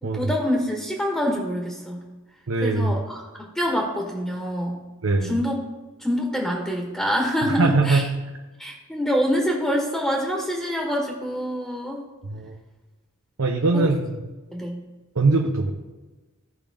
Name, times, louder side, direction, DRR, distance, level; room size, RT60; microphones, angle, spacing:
voice 1, 0.0-2.1 2.6-4.8 5.2-5.6 6.0-8.1 8.6-12.0 13.7-13.9 14.5-14.8, equal, 5° left, -1 dB, 1.2 m, -26 dB
voice 2, 2.5-2.9 5.0-5.3 7.5-8.1 12.2-12.5 13.4-14.3 15.1-15.7, right 3 dB, 80° right, 1 dB, 0.8 m, -21 dB
15.0 x 5.1 x 3.5 m, 1.2 s
head